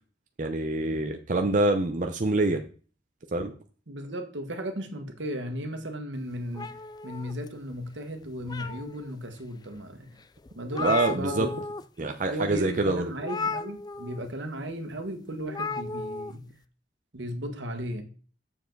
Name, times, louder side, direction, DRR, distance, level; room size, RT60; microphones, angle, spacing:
voice 1, 0.4-2.6 3.3-3.5 10.8-11.5 12.0-13.0, right 2 dB, 45° right, 0.7 m, -26 dB
voice 2, 3.9-10.2 10.5-11.6 12.3-16.6 17.1-18.0, right 1 dB, 85° right, 1.5 m, -35 dB
sound 1, 6.5-7.8 8.2-9.1 9.7-9.8 10.2-10.3 10.5-11.8 12.1-12.3 13.2-14.3 15.5-16.3, left 4 dB, 20° left, 0.3 m, -34 dB
7.2 x 7.1 x 3.9 m
head